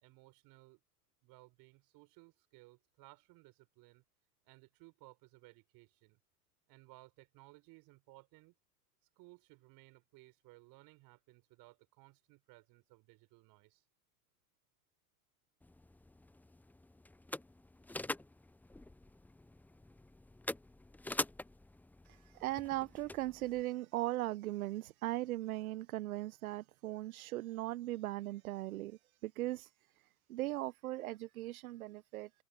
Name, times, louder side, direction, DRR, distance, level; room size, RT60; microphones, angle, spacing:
voice 1, 0.0-0.8 1.2-4.0 4.4-6.2 6.7-8.5 9.2-13.8, right 23 dB, 50° right, 5.7 m, -61 dB
sound 1, 15.6-23.6, left 2 dB, 5° left, 0.9 m, -45 dB
voice 2, 22.0-29.7 30.3-32.3, right 16 dB, 65° right, 1.1 m, -39 dB
hypercardioid pair, 90°, 45 cm